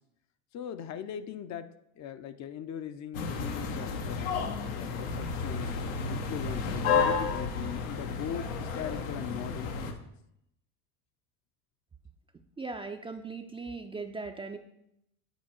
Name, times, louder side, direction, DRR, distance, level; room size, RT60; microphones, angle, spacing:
voice 1, 0.5-4.2 4.6-5.7 6.1-9.9, left 9 dB, 45° left, 10 dB, 0.6 m, -40 dB
sound 1, 3.1-9.9, left 5 dB, 90° left, 1.0 m, -32 dB
voice 2, 12.6-14.6, right 4 dB, 15° right, 5 dB, 0.4 m, -39 dB
8.9 x 4.6 x 4.3 m, 0.79 s
supercardioid pair, 95°, 40 cm